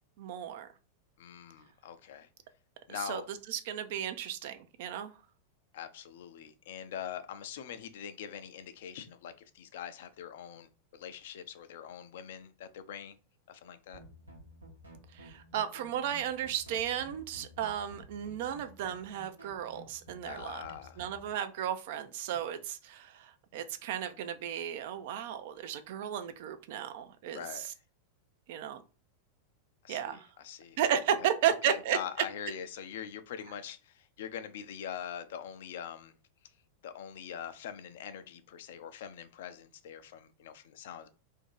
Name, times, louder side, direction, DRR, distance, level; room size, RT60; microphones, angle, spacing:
voice 1, 0.2-0.7 2.9-5.1 15.1-20.6 21.0-27.6 28.5-28.8 29.9-30.3 30.8-32.0, right 9 dB, 50° right, 0.5 m, -34 dB
voice 2, 1.2-2.3 2.9-3.3 5.7-13.2 13.5-14.0 20.2-21.0 27.3-27.7 29.8-30.8 31.2-36.2 36.8-41.1, left 9 dB, 55° left, 0.5 m, -43 dB
sound 1, 13.9-21.2, right 1 dB, 80° right, 0.9 m, -53 dB
2.8 x 2.6 x 3.8 m
figure-of-eight pair, 90°, 0 cm